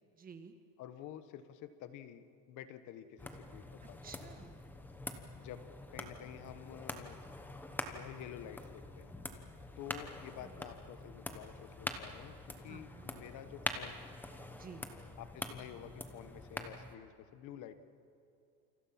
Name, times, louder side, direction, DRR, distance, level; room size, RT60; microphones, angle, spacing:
voice 1, 0.2-0.5 3.8-4.6 10.4-10.6 12.7-13.1 14.5-14.8, right 6 dB, 15° right, 7 dB, 1.6 m, -52 dB
voice 2, 0.8-4.2 5.4-7.2 7.9-9.1 9.8-14.1 15.2-17.8, left 10 dB, 35° left, 11 dB, 1.4 m, -50 dB
sound 1, 3.2-17.0, left 1 dB, 5° left, 1.1 m, -45 dB
28.5 x 27.5 x 5.9 m, 2.6 s
supercardioid pair, 160°, 49 cm